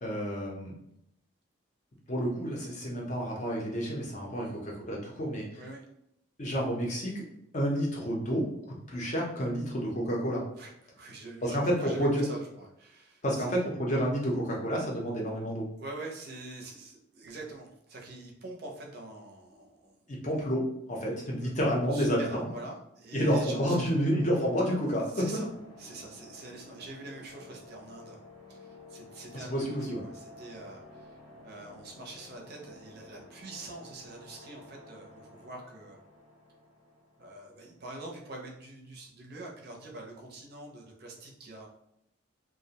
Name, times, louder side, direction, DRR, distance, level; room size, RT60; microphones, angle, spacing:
voice 1, 0.0-0.7 2.1-5.6 6.4-7.2 7.5-10.4 11.4-12.2 13.2-15.7 20.1-22.5 23.1-25.3 29.3-30.0, equal, 35° left, -2 dB, 0.5 m, -30 dB
voice 2, 10.9-13.5 15.8-19.9 21.1-21.5 21.9-24.0 25.1-25.5 25.8-28.2 28.5-31.2 31.4-36.0 37.2-41.7, right 2 dB, 50° right, 0 dB, 0.5 m, -45 dB
sound 1, 23.3-38.0, left 2 dB, 80° left, 0.6 m, -52 dB
2.4 x 2.0 x 2.8 m, 0.77 s
head